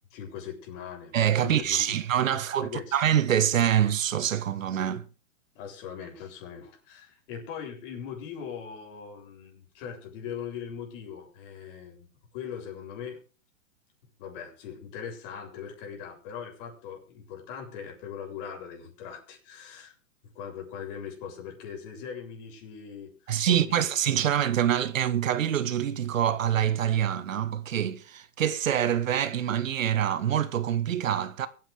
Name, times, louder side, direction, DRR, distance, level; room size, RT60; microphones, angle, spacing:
voice 1, 0.1-1.9 2.6-3.0 5.6-12.1 12.3-13.2 14.2-19.9 20.4-23.9, left 7 dB, 45° left, 7.2 m, -40 dB
voice 2, 1.1-5.1 23.3-31.5, right 10 dB, 85° right, 1.6 m, -25 dB
24.0 x 9.5 x 3.5 m
hypercardioid pair, 145°, 38 cm